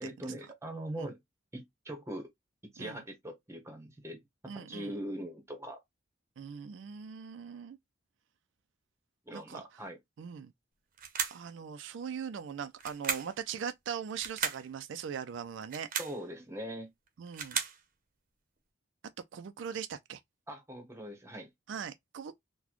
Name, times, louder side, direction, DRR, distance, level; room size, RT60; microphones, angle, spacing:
voice 1, 0.0-1.2 1.5-2.3 2.7-4.2 4.5-5.8 9.3-10.0 16.0-16.9 20.5-21.5, right 1 dB, 15° right, 0.9 m, -41 dB
voice 2, 4.5-4.9 6.4-7.8 9.3-9.6 10.2-10.5 11.3-15.9 17.2-17.6 19.3-20.2 21.7-22.4, right 7 dB, 70° right, 0.3 m, -40 dB
sound 1, 11.0-11.5 12.8-13.4 14.2-14.7 15.6-16.2 17.1-17.8, right 7 dB, 45° right, 0.7 m, -35 dB
3.9 x 2.1 x 2.9 m
head